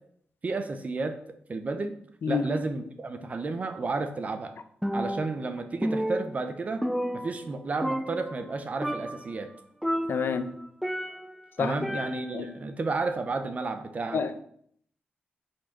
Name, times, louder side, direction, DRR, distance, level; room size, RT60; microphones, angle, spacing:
voice 1, 0.4-1.2 1.5-2.0 2.3-4.5 4.9-6.8 7.1-9.5 11.6-14.2, right 3 dB, 40° right, 0.7 m, -32 dB
Percussion, 4.8-5.5 5.8-7.6 7.8-8.5 8.8-9.3 9.8-11.4 11.8-12.5, equal, ahead, 0.4 m, -31 dB
voice 2, 10.1-10.5 11.6-11.7 12.3-12.5 14.1-14.4, left 5 dB, 60° left, 0.7 m, -28 dB
7.5 x 4.5 x 5.9 m
wide cardioid pair, 120°, 4 cm